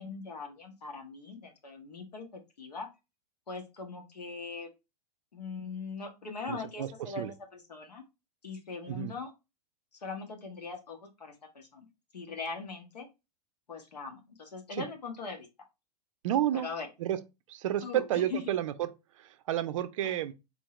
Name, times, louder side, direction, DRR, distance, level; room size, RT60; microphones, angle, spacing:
voice 1, 0.0-2.9 3.5-4.7 5.3-8.0 8.4-9.3 10.0-11.9 12.1-13.1 13.7-15.5 16.6-16.9 17.8-18.5 20.0-20.2, left 4 dB, 75° left, 1.2 m, -41 dB
voice 2, 6.5-7.3 8.9-9.1 14.7-14.8 16.2-16.7 17.0-17.2 17.5-20.3, right 12 dB, 50° right, 0.5 m, -31 dB
4.4 x 2.8 x 3.1 m
figure-of-eight pair, 95°, 21 cm